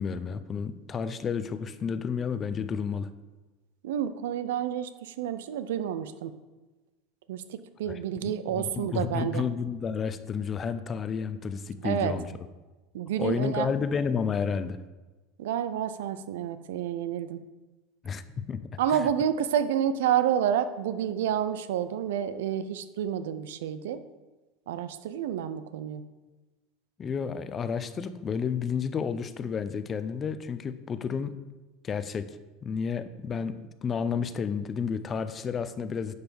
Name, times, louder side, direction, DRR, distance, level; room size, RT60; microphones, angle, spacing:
voice 1, 0.0-3.1 7.9-12.3 13.2-14.8 18.0-18.2 18.5-19.1 27.0-31.4 31.8-32.4 32.6-36.1, left 6 dB, 25° left, 12 dB, 0.5 m, -31 dB
voice 2, 3.8-6.3 7.3-9.4 11.8-12.1 12.9-13.7 15.4-17.4 18.8-24.0 24.7-26.0, right 9 dB, 90° right, 12 dB, 0.6 m, -29 dB
10.5 x 3.5 x 7.1 m, 1.2 s
supercardioid pair, 135°, 0 cm